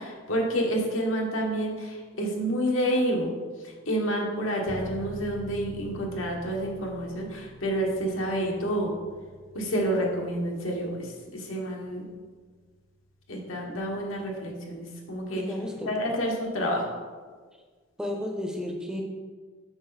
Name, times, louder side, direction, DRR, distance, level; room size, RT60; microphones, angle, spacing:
voice 1, 0.0-3.3 3.6-8.9 9.5-12.1 13.3-15.4 15.9-16.9, equal, 85° left, -1 dB, 1.5 m, -29 dB
Bass guitar, 4.7-14.4, left 1 dB, 45° left, 0.7 m, -47 dB
voice 2, 15.3-15.9 18.0-19.0, left 1 dB, 5° right, 2 dB, 0.6 m, -32 dB
7.8 x 5.9 x 4.1 m, 1.5 s
head